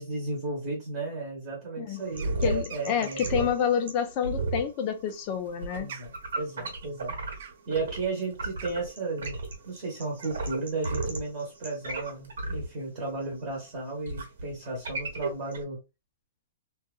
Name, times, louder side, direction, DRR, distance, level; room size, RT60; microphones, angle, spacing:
voice 1, 0.0-3.5 5.8-7.2 7.7-15.8, right 3 dB, 20° right, 0.9 m, -34 dB
sound 1, 1.9-8.1 8.3-15.6, right 3 dB, 90° right, 1.1 m, -34 dB
sound 2, 2.1-3.6 4.9-10.5, right 7 dB, 45° right, 0.4 m, -47 dB
voice 2, 2.4-5.9, left 8 dB, 25° left, 0.3 m, -28 dB
2.7 x 2.2 x 2.2 m
hypercardioid pair, 175°, 0 cm